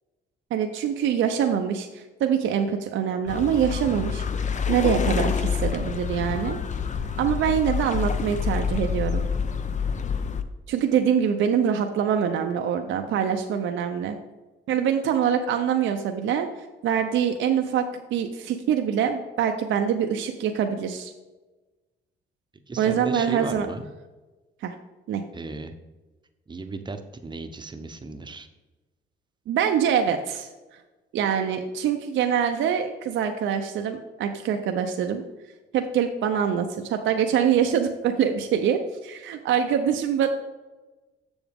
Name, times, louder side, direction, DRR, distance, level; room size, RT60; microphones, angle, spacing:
voice 1, 0.5-4.2 4.7-6.6 7.2-9.2 10.7-14.2 14.7-16.5 16.8-17.9 18.1-21.1 22.8-23.7 24.6-24.7 25.1-25.2 29.5-30.5 31.1-35.2 35.7-40.3, right 8 dB, 75° right, 5 dB, 0.6 m, -24 dB
sound 1, 3.3-10.4, left 6 dB, 40° left, 0.6 m, -27 dB
voice 2, 22.7-23.9 25.3-25.7 26.5-28.5, right 3 dB, 20° right, 8 dB, 0.8 m, -35 dB
7.1 x 7.0 x 3.5 m, 1.2 s
cardioid pair, 90°, 20 cm